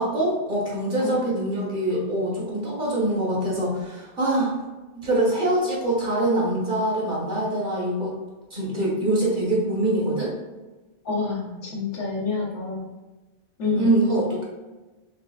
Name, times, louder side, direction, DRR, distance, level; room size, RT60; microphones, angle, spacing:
voice 1, 0.0-4.5 4.9-8.2 8.5-10.3 13.8-14.4, right 1 dB, 45° right, -5 dB, 1.3 m, -24 dB
voice 2, 11.0-12.9 13.6-13.9, left 4 dB, 85° left, -4 dB, 1.4 m, -27 dB
4.4 x 3.2 x 2.3 m, 1.2 s
omnidirectional pair, 1.2 m